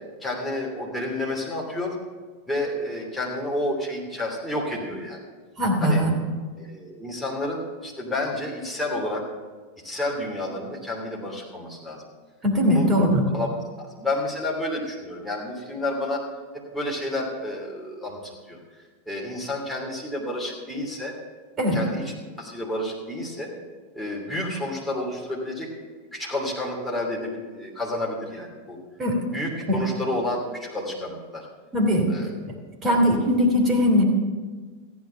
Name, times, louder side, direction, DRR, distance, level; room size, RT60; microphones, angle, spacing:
voice 1, 0.2-1.9 2.5-5.2 5.8-6.0 6.6-9.2 9.8-12.0 12.7-12.9 13.3-13.5 13.8-16.2 16.7-18.6 19.1-21.1 21.7-23.5 23.9-25.7 26.1-28.8 29.3-31.5 32.1-32.3 32.8-33.0, left 1 dB, ahead, -4 dB, 2.9 m, -30 dB
voice 2, 5.6-6.1 12.4-13.3 21.6-21.8 29.0-29.2 29.7-29.8 31.7-32.1 32.5-32.6 32.8-34.0, equal, 25° right, 1 dB, 3.0 m, -20 dB
14.0 x 9.6 x 5.8 m, 1.4 s
figure-of-eight pair, 90°, 0 cm